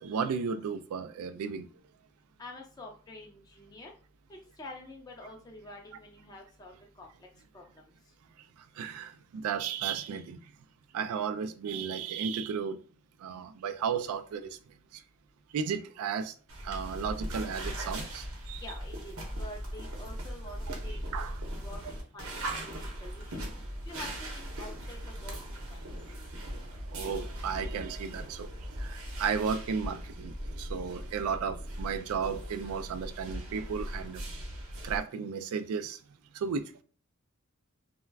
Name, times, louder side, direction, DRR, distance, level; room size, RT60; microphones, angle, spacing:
voice 1, 0.0-1.7 8.8-10.4 10.9-12.8 13.2-14.6 15.5-16.3 16.6-18.6 20.7-20.8 21.1-21.3 26.9-28.5 28.8-34.2 34.8-36.0 36.3-36.8, right 6 dB, 85° right, 0.3 m, -34 dB
voice 2, 2.4-3.9 4.3-7.1 7.5-7.9 18.6-25.8, left 2 dB, 20° left, 0.4 m, -48 dB
sound 1, 16.5-35.0, right 1 dB, 70° right, 0.8 m, -39 dB
2.3 x 2.1 x 3.3 m
head